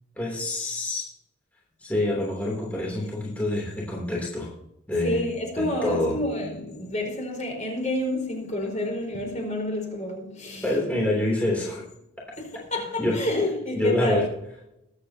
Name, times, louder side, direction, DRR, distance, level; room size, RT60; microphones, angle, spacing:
voice 1, 0.2-1.1 1.8-4.5 4.9-5.2 5.6-6.2 10.6-11.8 12.2-12.3 13.0-13.2 13.7-14.2, left 2 dB, 5° left, 3.0 m, -26 dB
voice 2, 5.0-10.7 12.4-14.3, left 1 dB, 35° left, 4.5 m, -29 dB
22.0 x 8.2 x 2.8 m
head